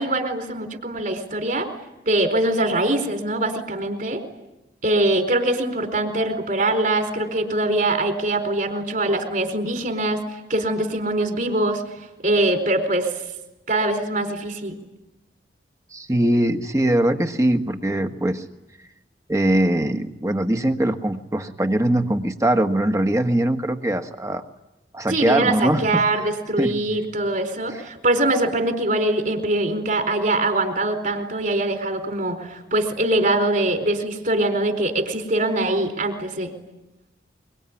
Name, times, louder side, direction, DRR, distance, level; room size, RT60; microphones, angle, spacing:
voice 1, 0.0-1.7 2.1-4.2 4.8-10.2 10.5-11.8 12.2-13.1 13.7-14.8 25.1-36.5, right 2 dB, 50° right, 4 dB, 4.4 m, -23 dB
voice 2, 15.9-18.4 19.3-24.4 24.9-26.0 26.6-26.8, right 1 dB, 15° right, 6 dB, 1.5 m, -21 dB
24.5 x 24.0 x 9.9 m, 0.95 s
head